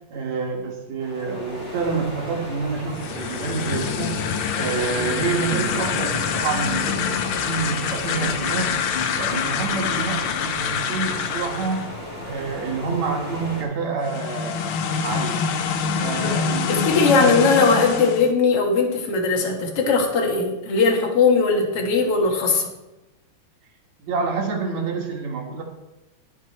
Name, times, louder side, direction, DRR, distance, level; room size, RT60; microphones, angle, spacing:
voice 1, 0.1-4.2 4.5-8.8 9.1-11.9 12.2-15.4 16.0-17.5 24.0-25.6, right 5 dB, 65° right, 1 dB, 3.0 m, -28 dB
sound 1, 1.0-13.6, left 1 dB, 20° left, 3.2 m, -36 dB
sound 2, 2.9-11.9 14.0-18.3, left 7 dB, 80° left, 1.2 m, -26 dB
voice 2, 16.7-22.7, left 4 dB, 55° left, 1 dB, 2.6 m, -19 dB
19.5 x 6.6 x 4.3 m, 0.98 s
omnidirectional pair, 3.4 m